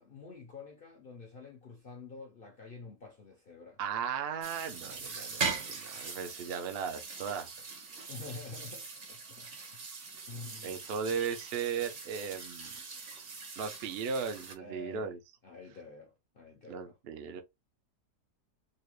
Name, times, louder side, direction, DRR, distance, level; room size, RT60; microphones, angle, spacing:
voice 1, 0.0-3.8 8.1-9.8 10.2-10.8 14.6-15.1 15.4-17.0, left 4 dB, 65° left, 0.5 m, -48 dB
voice 2, 3.8-7.5 10.6-12.7 13.6-15.2 16.7-17.4, right 6 dB, 70° right, 0.5 m, -36 dB
sound 1, 4.4-14.5, right 5 dB, 45° right, 0.8 m, -41 dB
3.9 x 2.2 x 3.1 m
omnidirectional pair, 1.8 m